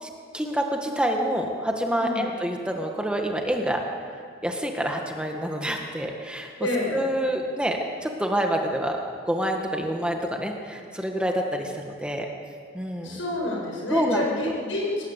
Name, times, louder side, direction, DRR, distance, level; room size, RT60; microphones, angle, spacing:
voice 1, 0.0-3.8 4.4-6.5 6.9-9.0 9.3-12.3 12.7-13.2 13.9-14.2, equal, 5° right, 2 dB, 1.7 m, -27 dB
voice 2, 2.0-2.3 6.6-7.0 13.0-15.0, left 2 dB, 75° left, -2 dB, 7.8 m, -28 dB
27.5 x 18.5 x 8.3 m, 2.2 s
head